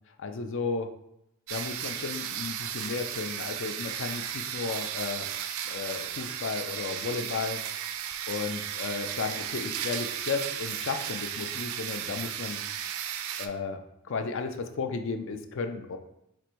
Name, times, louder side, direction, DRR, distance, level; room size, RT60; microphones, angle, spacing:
voice 1, 0.2-0.9 1.5-5.3 5.7-7.6 8.3-12.6 13.4-13.8 14.1-16.0, left 4 dB, 55° left, 6 dB, 0.4 m, -34 dB
sound 1, 1.5-13.5, right 9 dB, 70° right, 0.4 m, -35 dB
4.3 x 2.5 x 4.4 m, 0.82 s
head